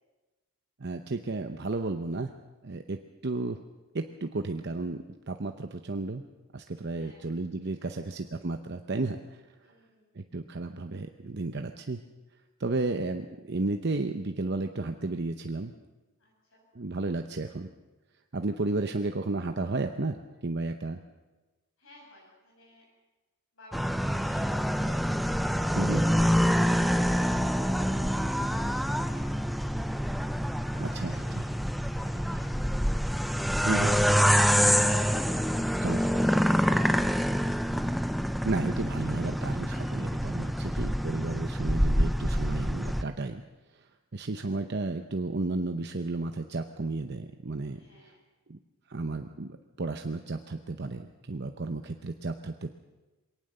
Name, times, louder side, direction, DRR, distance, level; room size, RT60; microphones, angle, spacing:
voice 1, 0.8-2.3 2.6-3.6 3.9-6.2 6.5-9.4 10.2-12.0 12.6-15.7 16.7-17.7 18.3-21.0 25.7-26.0 30.8-31.1 33.6-33.9 35.8-36.0 38.4-43.4 44.1-47.8 48.5-48.6 48.9-52.7, right 3 dB, 50° right, 6 dB, 0.8 m, -33 dB
voice 2, 6.9-7.2 7.6-8.2 9.6-10.2 16.2-16.7 21.8-22.8 23.5-25.0 25.7-30.0 30.5-32.5 47.7-48.2, left 1 dB, 70° left, -3 dB, 7.1 m, -55 dB
sound 1, 23.7-43.0, equal, ahead, 0.6 m, -26 dB
23.0 x 18.0 x 6.7 m, 1.2 s
head